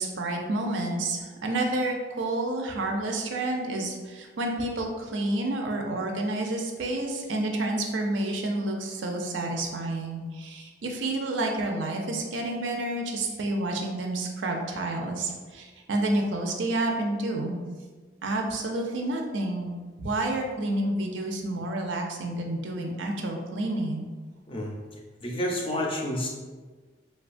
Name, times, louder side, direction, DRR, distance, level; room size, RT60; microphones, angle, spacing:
voice 1, 0.0-17.6 18.2-19.7 20.0-24.1, right 2 dB, 75° right, 2 dB, 0.4 m, -29 dB
voice 2, 25.2-26.3, left 1 dB, 30° left, -1 dB, 0.4 m, -29 dB
3.1 x 2.2 x 2.4 m, 1.4 s
head